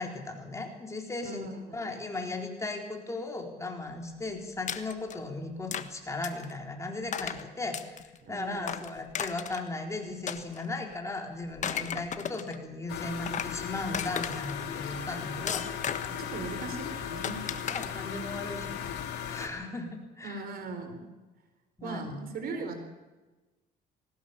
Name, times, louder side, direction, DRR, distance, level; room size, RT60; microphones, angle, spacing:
voice 1, 0.0-15.8 17.7-18.9 19.3-20.4 21.8-22.3 22.5-22.8, left 2 dB, 15° left, 3 dB, 4.1 m, -37 dB
voice 2, 1.2-1.8 8.2-8.7 16.1-17.7 20.2-21.1 21.8-22.8, right 3 dB, 60° right, 7 dB, 4.4 m, -39 dB
sound 1, 4.7-5.2 5.7-5.9 6.2-6.5 7.1-7.4 7.7-8.2 8.6-9.7 10.3-11.0 11.4-12.6 13.0-13.5 13.9-14.6 15.5-16.2 17.2-17.9, left 8 dB, 45° left, 1.4 m, -35 dB
sound 2, 12.9-19.5, left 8 dB, 85° left, 3.4 m, -37 dB
20.0 x 18.5 x 7.1 m, 1.2 s
cardioid pair, 110°, 17 cm